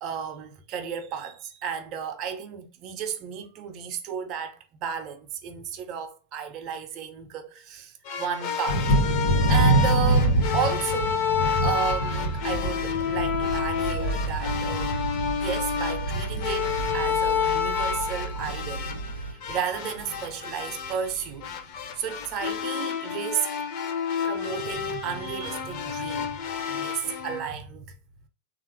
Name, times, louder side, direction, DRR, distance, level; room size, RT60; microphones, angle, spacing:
voice 1, 0.0-9.0 9.5-11.3 11.6-15.1 15.4-18.9 19.1-21.5 22.0-23.5 24.2-26.4 26.7-27.9, right 7 dB, 35° right, 0.6 m, -33 dB
sound 1, 8.0-27.4, left 7 dB, 45° left, 0.6 m, -30 dB
Thunder, 8.7-18.1 18.4-19.1 19.5-19.6 20.0-20.2, right 1 dB, 70° left, 1.2 m, -26 dB
sound 2, 13.2-19.3, right 5 dB, 85° left, 0.3 m, -35 dB
3.6 x 2.4 x 3.2 m
figure-of-eight pair, 90°, 0 cm